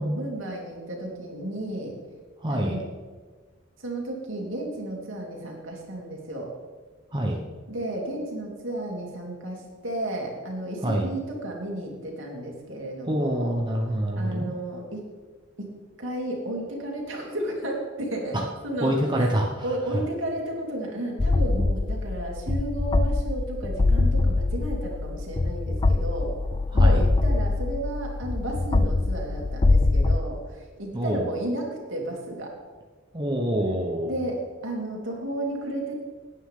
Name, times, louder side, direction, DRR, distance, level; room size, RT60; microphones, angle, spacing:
voice 1, 0.0-1.9 2.5-2.8 3.8-6.5 7.7-13.6 14.1-15.0 15.6-18.4 18.6-19.3 19.6-26.3 26.7-32.5 34.0-36.0, right 1 dB, 70° right, -1 dB, 3.0 m, -33 dB
voice 2, 2.4-2.8 7.1-7.4 10.8-11.1 13.0-14.5 18.3-18.4 18.8-20.0 26.7-27.0 30.9-31.2 33.1-34.1, right 1 dB, 25° right, 0 dB, 1.1 m, -26 dB
sound 1, 21.2-30.2, left 2 dB, 25° left, 0.4 m, -23 dB
18.0 x 9.6 x 3.8 m, 1.4 s
head